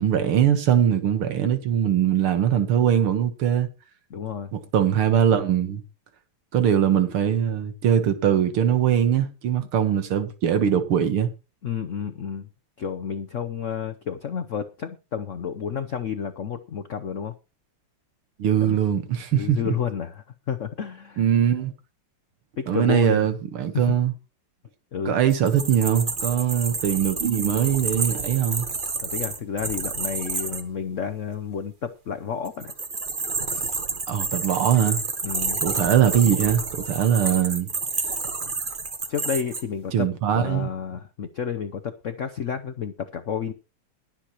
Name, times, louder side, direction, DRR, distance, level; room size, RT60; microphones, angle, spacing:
voice 1, 0.0-3.7 4.5-5.8 6.5-11.3 18.4-19.7 21.2-21.7 22.7-24.1 25.1-28.7 34.1-35.0 35.6-37.7 39.9-40.7, right 9 dB, 80° right, 2.3 m, -21 dB
voice 2, 4.1-4.5 11.6-12.5 12.8-17.3 18.6-18.8 19.3-21.2 22.6-23.3 23.7-23.8 24.9-25.1 29.0-32.7 33.5-33.8 35.2-35.6 39.1-43.5, left 7 dB, 70° left, 0.7 m, -31 dB
sound 1, 25.3-30.6 32.4-39.6, right 4 dB, 30° right, 1.1 m, -29 dB
21.5 x 7.4 x 3.0 m
omnidirectional pair, 2.4 m